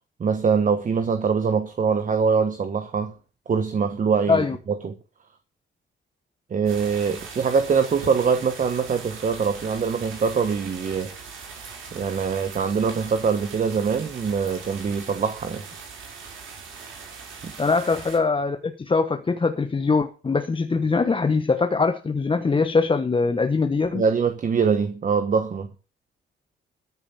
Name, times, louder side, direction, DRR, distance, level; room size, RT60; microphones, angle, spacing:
voice 1, 0.2-3.1 3.5-5.0 6.5-11.1 11.9-15.6 17.4-17.5 23.9-25.7, right 6 dB, 40° right, 1.3 m, -23 dB
sound 1, 6.6-18.2, right 5 dB, 85° right, 5.4 m, -40 dB
voice 2, 17.6-24.0, left 4 dB, 25° left, 1.2 m, -22 dB
13.5 x 6.9 x 7.0 m
cardioid pair, 90°, 20 cm